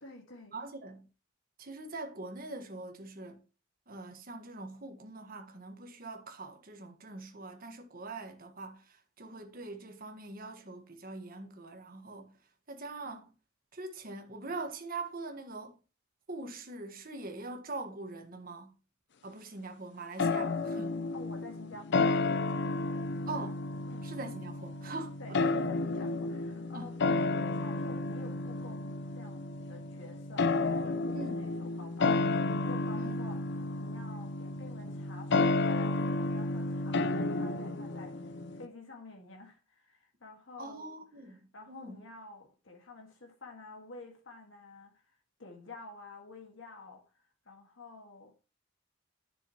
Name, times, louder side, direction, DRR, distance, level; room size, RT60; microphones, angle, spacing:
voice 1, 0.0-0.5 13.0-13.2 21.1-23.1 23.9-24.1 25.2-33.4 33.8-40.9 41.5-48.3, left 3 dB, 80° left, 1.7 m, -51 dB
voice 2, 0.5-1.1 1.6-3.4 3.9-12.3 12.7-13.3 13.7-15.8 16.3-18.7 19.2-21.0 23.3-23.6 24.0-25.5 26.7-26.9 31.1-31.4 32.9-33.2 40.6-42.0, right 2 dB, 50° right, 1.5 m, -43 dB
sound 1, 20.2-38.7, left 3 dB, 60° left, 0.6 m, -32 dB
10.5 x 6.3 x 3.0 m
head